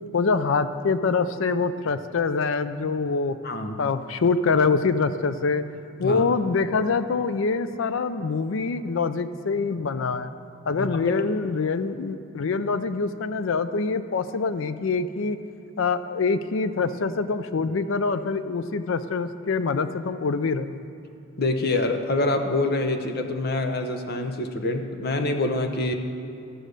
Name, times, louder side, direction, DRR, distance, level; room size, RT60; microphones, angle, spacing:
voice 1, 0.1-3.4 3.8-5.6 6.0-10.3 10.7-15.4 15.8-20.9, left 4 dB, 75° left, 12 dB, 0.5 m, -25 dB
voice 2, 3.4-3.9 6.0-6.2 10.8-11.2 21.4-25.9, left 2 dB, 50° left, 5 dB, 0.8 m, -26 dB
13.5 x 6.2 x 6.6 m, 2.7 s
head